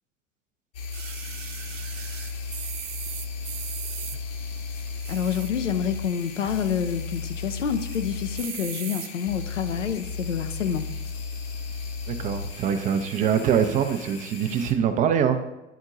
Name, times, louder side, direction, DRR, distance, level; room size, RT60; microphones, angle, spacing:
sound 1, 0.7-14.7, left 4 dB, 55° left, 1.3 m, -35 dB
sound 2, 0.9-4.2 4.9-5.7 6.1-6.2 6.4-6.5 6.9-7.3 7.8-8.0 8.3-9.1 9.8-9.9, right 11 dB, 45° right, 0.9 m, -38 dB
voice 1, 5.1-10.9, left 8 dB, 75° left, 8 dB, 0.7 m, -28 dB
voice 2, 12.1-15.4, right 8 dB, 20° right, 8 dB, 0.4 m, -24 dB
10.0 x 4.4 x 3.8 m, 1.0 s
figure-of-eight pair, 80°, 37 cm